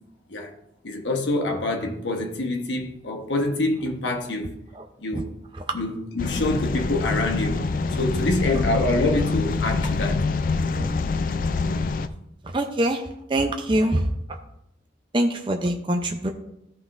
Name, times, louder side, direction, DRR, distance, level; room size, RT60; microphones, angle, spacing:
voice 1, 0.8-4.6 5.0-5.3 5.7-7.6 8.0-10.2, left 2 dB, 85° left, 1.1 m, -26 dB
sound 1, 6.2-12.1, left 3 dB, 50° left, 0.4 m, -25 dB
voice 2, 12.5-14.1 15.1-16.3, right 1 dB, 25° right, 0.6 m, -24 dB
14.0 x 5.7 x 2.5 m
head